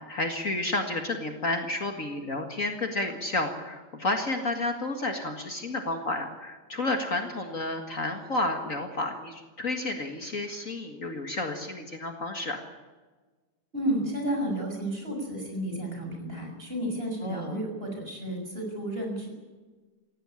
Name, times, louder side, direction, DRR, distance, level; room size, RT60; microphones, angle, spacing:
voice 1, 0.1-12.6 17.2-17.6, left 2 dB, 45° left, 5 dB, 2.2 m, -31 dB
voice 2, 13.7-19.3, right 1 dB, 30° right, 1 dB, 6.7 m, -32 dB
18.0 x 16.5 x 10.0 m, 1.3 s
omnidirectional pair, 1.9 m